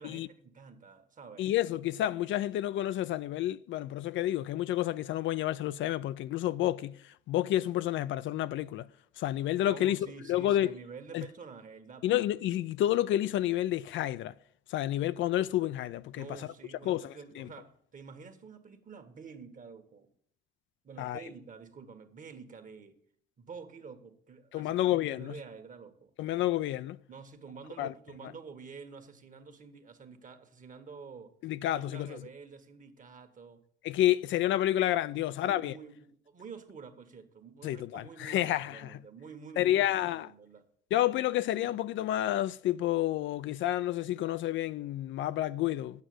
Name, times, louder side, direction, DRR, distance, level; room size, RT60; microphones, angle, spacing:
voice 1, 0.0-1.5 9.7-12.2 16.1-20.1 20.8-23.0 23.4-26.1 27.1-31.3 31.7-33.6 35.1-40.6, right 5 dB, 40° right, 1.4 m, -49 dB
voice 2, 1.4-7.0 7.3-8.9 9.2-10.0 10.3-10.7 11.1-11.2 12.0-14.3 14.7-16.3 16.9-17.5 21.0-21.2 24.5-25.3 26.2-27.0 27.8-27.9 31.4-32.1 33.8-35.7 37.6-39.0 39.6-40.3 40.9-46.0, left 13 dB, 70° left, 0.4 m, -30 dB
8.2 x 6.2 x 7.8 m
cardioid pair, 95°, 21 cm